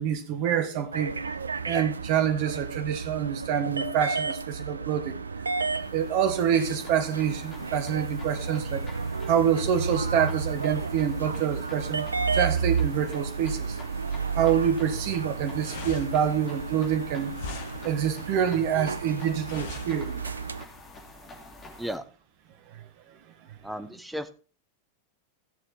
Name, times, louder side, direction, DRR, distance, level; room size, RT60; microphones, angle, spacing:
voice 1, 0.0-1.4 1.6-5.2 5.7-8.9 9.2-12.1 12.3-13.8 14.3-17.4 17.8-20.2 22.7-22.8 23.5-23.6, right 8 dB, 45° right, 1.5 m, -26 dB
sound 1, 0.9-20.7, right 5 dB, 75° right, 0.4 m, -32 dB
sound 2, 5.7-22.0, left 2 dB, 25° left, 2.9 m, -48 dB
sound 3, 15.3-20.5, left 6 dB, 55° left, 1.5 m, -42 dB
voice 2, 23.6-24.3, equal, 5° right, 0.9 m, -34 dB
15.5 x 6.8 x 4.2 m
figure-of-eight pair, 90°, 0 cm